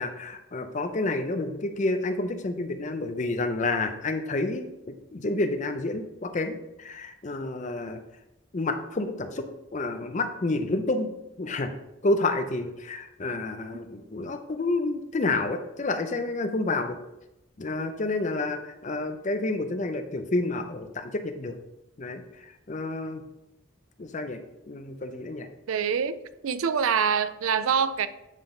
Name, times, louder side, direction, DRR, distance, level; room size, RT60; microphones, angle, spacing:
voice 1, 0.0-8.0 8.5-9.5 9.7-11.1 11.4-11.7 12.0-17.0 17.6-21.6 22.0-23.2 24.0-24.4 24.7-25.5, left 2 dB, 35° left, 7 dB, 0.5 m, -29 dB
voice 2, 25.7-26.2 26.4-28.1, right 7 dB, 80° right, 13 dB, 0.4 m, -25 dB
9.0 x 3.7 x 3.8 m, 0.91 s
head